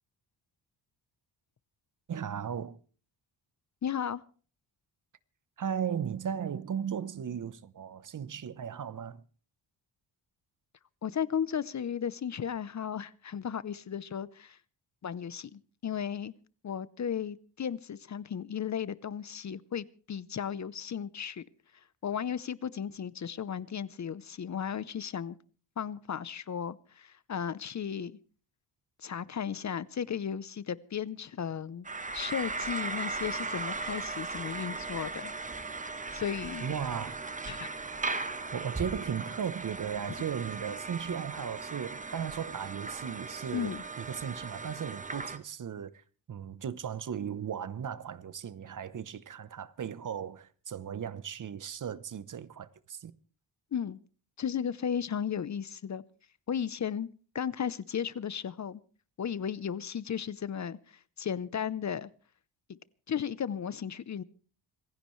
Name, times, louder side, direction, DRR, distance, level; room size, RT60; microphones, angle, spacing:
voice 1, 2.1-2.8 5.6-9.2 36.6-37.2 37.8-38.1 38.5-46.0 46.3-53.1, right 8 dB, 45° right, 0.9 m, -36 dB
voice 2, 3.8-4.2 11.0-14.6 15.0-16.3 16.6-21.4 22.0-25.4 25.8-28.2 29.0-31.9 32.1-35.3 36.1-36.7 37.5-37.7 43.5-43.8 53.7-54.0 54.4-56.0 56.5-57.1 57.3-58.8 59.2-62.1 62.7-62.8 63.1-64.2, left 8 dB, 40° left, 0.7 m, -35 dB
sound 1, 31.8-45.4, right 3 dB, 20° right, 1.2 m, -38 dB
26.5 x 16.0 x 3.2 m
wide cardioid pair, 120°, 42 cm